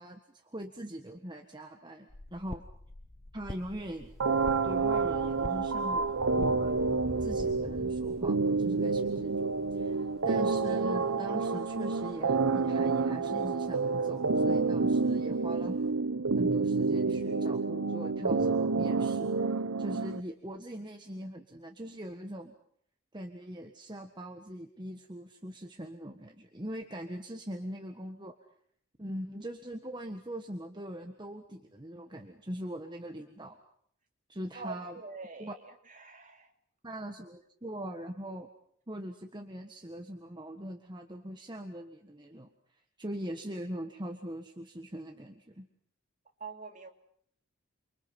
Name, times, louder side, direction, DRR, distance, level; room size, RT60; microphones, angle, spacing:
voice 1, 0.0-2.6 3.3-4.1 4.6-15.8 16.4-22.5 23.1-28.3 29.0-33.6 34.3-34.9 35.4-35.5 36.8-38.5 38.9-42.5 43.0-45.7, equal, 20° right, 4 dB, 1.5 m, -41 dB
sound 1, 2.1-8.3, left 1 dB, 30° left, 0.9 m, -46 dB
Thunder / Rain, 3.5-15.9, equal, 5° right, 4.3 m, -49 dB
sound 2, 4.2-20.2, right 4 dB, 80° right, 1.0 m, -29 dB
voice 2, 34.5-36.5 46.4-46.9, right 3 dB, 35° right, 4 dB, 3.1 m, -44 dB
29.5 x 24.0 x 5.9 m, 0.65 s
head